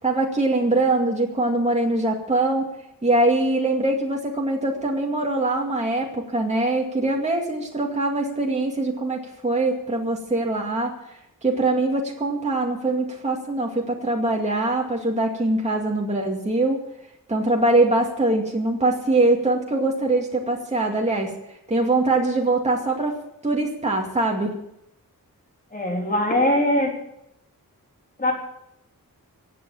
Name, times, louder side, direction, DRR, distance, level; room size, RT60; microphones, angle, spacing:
voice 1, 0.0-2.7 3.0-16.8 17.3-21.3 21.7-23.1 23.4-24.6, right 2 dB, 20° right, -1 dB, 2.3 m, -23 dB
voice 2, 25.7-26.9 28.2-28.3, left 1 dB, 25° left, 0 dB, 4.0 m, -21 dB
16.5 x 8.7 x 8.6 m, 0.81 s
wide cardioid pair, 125°, 35 cm